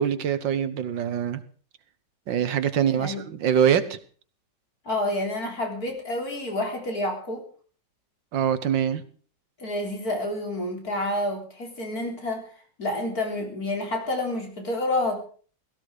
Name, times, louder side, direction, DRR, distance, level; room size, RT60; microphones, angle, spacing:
voice 1, 0.0-1.4 2.3-4.0 8.3-9.0, right 8 dB, 80° right, 13 dB, 1.8 m, -24 dB
voice 2, 2.8-3.2 4.8-7.4 9.6-12.5 12.8-15.2, left 1 dB, 55° left, 2 dB, 4.2 m, -29 dB
17.0 x 15.0 x 5.0 m, 0.43 s
omnidirectional pair, 2.0 m